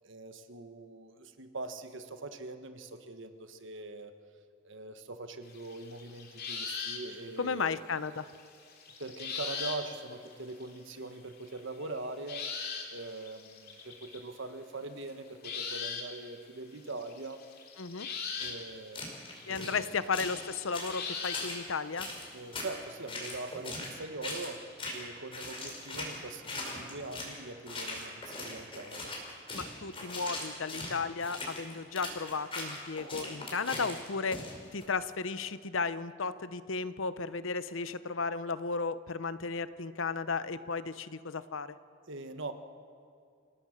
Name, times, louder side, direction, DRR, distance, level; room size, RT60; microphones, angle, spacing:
voice 1, 0.0-4.1 4.6-7.7 9.0-12.5 12.9-17.4 18.4-19.0 19.5-20.0 22.3-29.1 42.1-42.5, right 2 dB, 65° right, 8 dB, 1.4 m, -42 dB
sound 1, 5.5-7.2 7.5-7.6 7.9-9.9 10.1-10.8 11.5-14.2 15.0-15.1 15.4-16.3 16.6-21.5 22.3-23.0 23.4-23.5, left 5 dB, 55° left, 3.0 m, -40 dB
voice 2, 7.4-8.3 17.8-18.1 19.5-22.1 29.5-34.4 34.7-41.8, left 4 dB, 70° left, 14 dB, 0.8 m, -34 dB
sound 2, 18.4-18.5 18.9-19.8 20.1-20.4 20.7-21.6 22.0-22.7 23.1-23.9 24.2-24.5 24.8-25.1 25.3-27.4 27.7-34.8, left 2 dB, 25° left, 4.9 m, -40 dB
28.0 x 18.0 x 6.5 m, 2.3 s
head